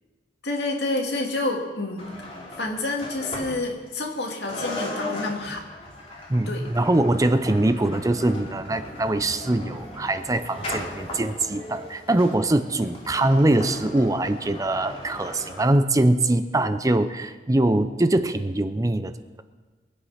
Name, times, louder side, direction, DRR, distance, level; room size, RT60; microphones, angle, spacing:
voice 1, 0.4-5.7 6.5-6.7, left 2 dB, 70° left, 1 dB, 2.3 m, -29 dB
sound 1, 2.0-4.1 4.5-15.6, left 1 dB, 35° left, 3.0 m, -37 dB
voice 2, 6.3-19.1, right 1 dB, 20° right, 11 dB, 0.5 m, -22 dB
23.0 x 8.1 x 5.7 m, 1.3 s
head